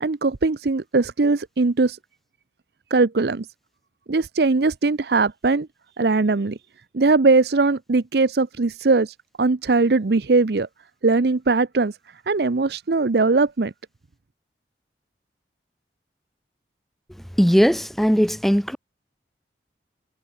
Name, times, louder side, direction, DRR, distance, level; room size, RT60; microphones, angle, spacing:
voice 1, 0.0-2.0 2.9-3.5 4.1-5.7 6.0-6.6 6.9-10.7 11.0-11.9 12.3-13.7, right 3 dB, 65° right, 0.7 m, -20 dB
voice 2, 17.4-18.8, equal, ahead, 1.4 m, -18 dB
head